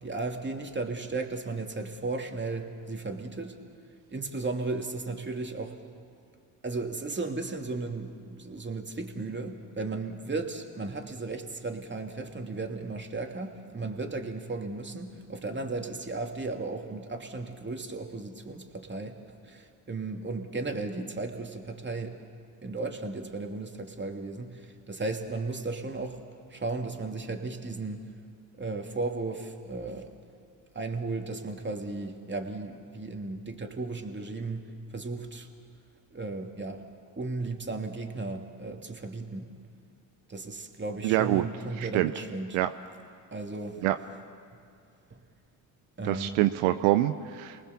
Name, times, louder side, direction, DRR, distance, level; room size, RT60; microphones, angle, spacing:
voice 1, 0.0-3.6 4.1-5.8 6.6-19.2 19.4-22.2 22.6-26.2 26.5-28.1 28.6-30.1 30.7-34.6 34.9-35.5 36.1-36.9 37.2-39.5 40.3-42.6 43.3-43.9 45.1-45.2 46.0-46.5, right 3 dB, 25° right, 3 dB, 2.7 m, -35 dB
voice 2, 41.0-41.5 41.8-42.1 42.5-42.7 43.8-44.0 46.0-47.6, right 15 dB, 75° right, 10 dB, 0.8 m, -25 dB
28.5 x 19.5 x 7.2 m, 2.3 s
hypercardioid pair, 60°, 46 cm